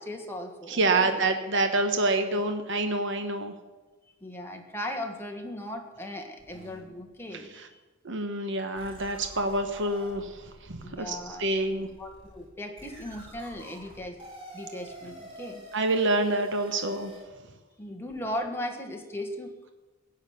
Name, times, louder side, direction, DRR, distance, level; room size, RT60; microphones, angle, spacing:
voice 1, 0.0-1.3 4.2-7.6 10.8-11.4 11.8-14.2 14.5-15.7 17.8-19.7, left 1 dB, 10° left, 3 dB, 1.6 m, -37 dB
voice 2, 0.7-3.5 8.0-10.4 10.7-11.9 15.7-17.1, right 2 dB, 65° right, 6 dB, 1.2 m, -27 dB
sound 1, 6.4-7.6 8.1-8.2 8.8-17.2, equal, 25° right, 5.9 m, -48 dB
16.0 x 6.5 x 9.5 m, 1.2 s
head